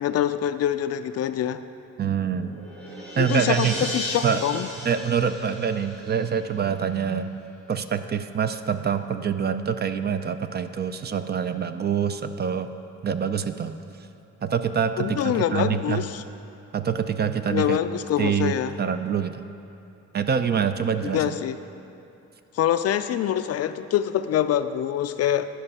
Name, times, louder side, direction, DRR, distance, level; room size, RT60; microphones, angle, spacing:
voice 1, 0.0-1.6 3.2-4.7 15.0-16.2 17.5-18.7 21.0-21.6 22.5-25.5, left 10 dB, 55° left, 11 dB, 0.4 m, -25 dB
voice 2, 2.0-2.6 3.2-3.9 4.2-4.4 4.8-7.3 7.7-12.7 13.0-13.8 14.4-16.0 16.7-17.8 18.2-19.4 20.1-21.4, right 7 dB, 35° right, 10 dB, 0.4 m, -25 dB
sound 1, 2.3-6.7, equal, 70° right, 2.1 m, -36 dB
11.0 x 5.3 x 5.5 m, 2.8 s
cardioid pair, 90°, 30 cm